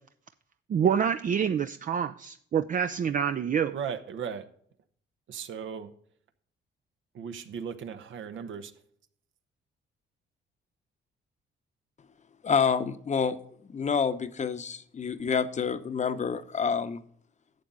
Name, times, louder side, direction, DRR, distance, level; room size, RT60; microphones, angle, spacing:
voice 1, 0.7-3.8, right 7 dB, 40° right, 0.5 m, -27 dB
voice 2, 3.7-4.5 5.3-5.9 7.1-8.7, right 7 dB, 75° right, 1.1 m, -37 dB
voice 3, 12.4-17.0, left 6 dB, 35° left, 0.8 m, -28 dB
11.5 x 7.3 x 3.8 m
cardioid pair, 90°, 20 cm